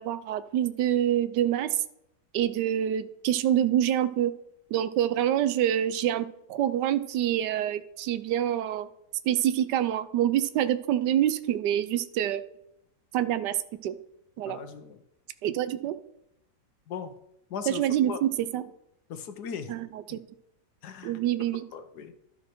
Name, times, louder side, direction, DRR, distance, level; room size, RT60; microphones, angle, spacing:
voice 1, 0.0-1.8 2.3-4.3 4.7-8.9 9.2-12.4 13.1-13.6 13.8-14.0 14.4-14.6 15.4-16.0 17.7-18.6 19.7-20.2 21.0-21.6, right 11 dB, 80° right, 14 dB, 1.2 m, -26 dB
voice 2, 14.5-15.0 16.9-17.1 17.5-17.8 18.1-18.2 19.1-19.7 20.8-21.2 21.7-22.1, left 7 dB, 70° left, 9 dB, 1.3 m, -37 dB
12.0 x 5.9 x 4.5 m, 0.80 s
omnidirectional pair, 1.8 m